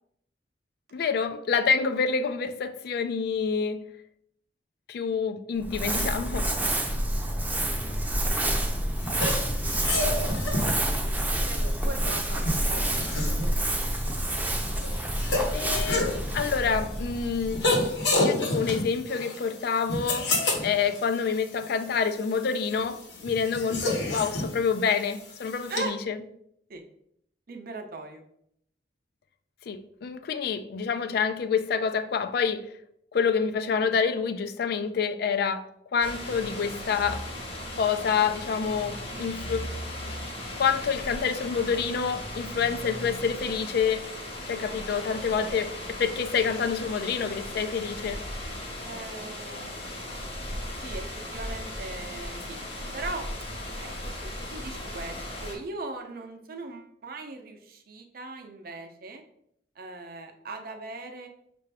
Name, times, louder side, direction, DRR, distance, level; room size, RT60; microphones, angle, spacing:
voice 1, 0.9-3.9 4.9-6.5 15.5-17.7 18.2-20.4 20.6-26.2 29.7-32.7 33.1-37.3 37.7-39.7 40.6-44.1 44.5-48.2, left 6 dB, 60° left, 0.3 m, -27 dB
Crumpling crinkling, 5.6-18.0, right 1 dB, 10° right, 0.5 m, -28 dB
sound 1, 9.0-25.8, left 2 dB, 85° left, 1.1 m, -31 dB
voice 2, 11.3-12.8 13.3-13.9 25.7-25.9 26.7-26.8 27.5-28.2 48.7-49.7 50.8-51.1 51.3-52.6 52.9-53.3 53.8-59.2 59.8-61.3, right 3 dB, 55° right, 0.6 m, -39 dB
sound 2, 36.0-55.6, left 1 dB, 35° left, 0.9 m, -37 dB
5.6 x 2.5 x 3.3 m
head